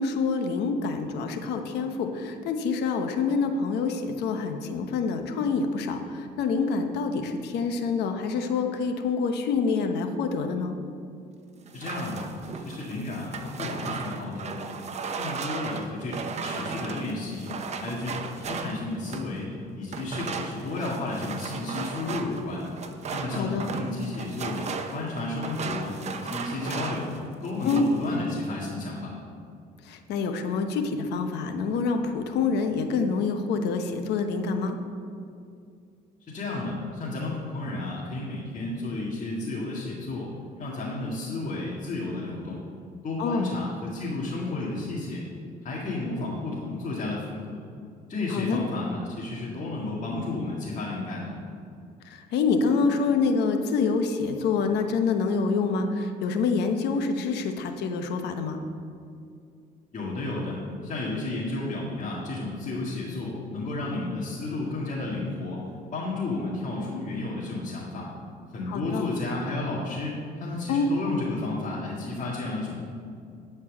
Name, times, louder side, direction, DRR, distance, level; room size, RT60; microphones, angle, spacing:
voice 1, 0.0-10.7 23.3-23.7 27.6-27.9 29.9-34.8 43.2-43.5 48.3-48.6 52.1-58.6 68.7-69.0 70.7-70.9, left 4 dB, 80° left, 6 dB, 1.0 m, -26 dB
voice 2, 11.7-12.3 12.5-14.8 15.2-22.7 23.1-27.1 27.4-29.1 36.3-40.3 40.6-42.6 43.0-45.3 45.6-47.6 48.1-51.4 59.9-65.6 65.9-68.1 68.5-72.8, left 2 dB, 45° left, -6 dB, 2.0 m, -32 dB
sound 1, 11.7-19.4 19.9-27.2 27.4-28.0, right 5 dB, 40° right, 0.8 m, -36 dB
11.5 x 4.6 x 7.3 m, 2.4 s
cardioid pair, 110°, 17 cm